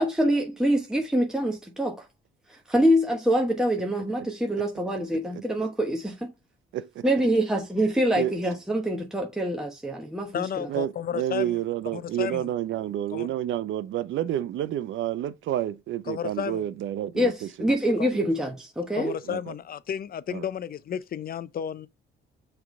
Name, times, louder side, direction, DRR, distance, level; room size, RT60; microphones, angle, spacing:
voice 1, 0.0-2.0 2.5-6.3 7.0-10.7 17.1-17.3 17.6-19.1, equal, 5° right, 1.1 m, -25 dB
voice 2, 6.7-7.0 8.1-8.3 10.7-17.5 18.1-18.3 19.2-19.5 20.3-20.4, right 12 dB, 75° right, 0.6 m, -30 dB
voice 3, 10.3-11.6 11.9-12.5 13.1-13.3 16.1-16.6 18.0-18.1 18.9-21.9, left 9 dB, 50° left, 0.7 m, -32 dB
6.0 x 3.4 x 5.1 m
cardioid pair, 90°, 20 cm